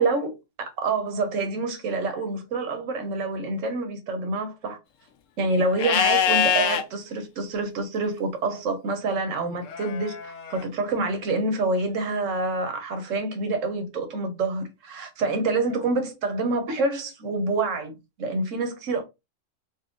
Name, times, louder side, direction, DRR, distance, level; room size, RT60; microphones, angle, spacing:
voice 1, 0.0-4.8 5.4-17.9 18.2-19.0, right 3 dB, 90° right, 1.2 m, -27 dB
Livestock farm animals working animals, 5.8-6.8 9.7-10.6, left 7 dB, 85° left, 1.0 m, -24 dB
4.2 x 2.2 x 3.7 m
omnidirectional pair, 1.3 m